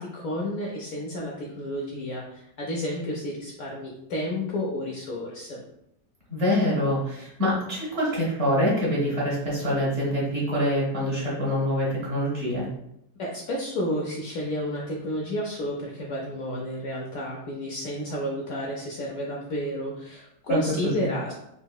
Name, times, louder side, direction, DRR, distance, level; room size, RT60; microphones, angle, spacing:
voice 1, 0.0-5.6 13.2-21.3, equal, 70° left, -2 dB, 0.8 m, -31 dB
voice 2, 6.3-12.7 20.5-20.6 20.8-21.1, equal, 45° right, -5 dB, 1.2 m, -25 dB
3.9 x 2.7 x 2.2 m, 0.78 s
omnidirectional pair, 1.9 m